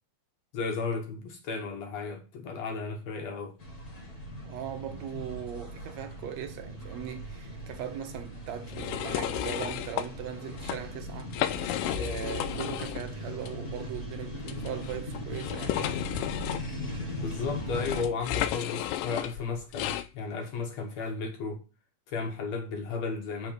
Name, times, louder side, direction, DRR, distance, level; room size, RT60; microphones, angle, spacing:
voice 1, 0.5-3.5 17.2-21.6 22.1-23.5, left 4 dB, 65° left, 2.0 m, -34 dB
sound 1, 3.6-18.0, equal, 30° left, 2.1 m, -39 dB
voice 2, 4.4-11.3 11.7-15.8, right 9 dB, 65° right, 1.9 m, -39 dB
sound 2, 8.7-10.1 10.5-10.8 11.2-13.1 13.4-13.5 14.5-20.1, left 12 dB, 90° left, 2.3 m, -33 dB
6.6 x 5.4 x 6.7 m
omnidirectional pair, 3.9 m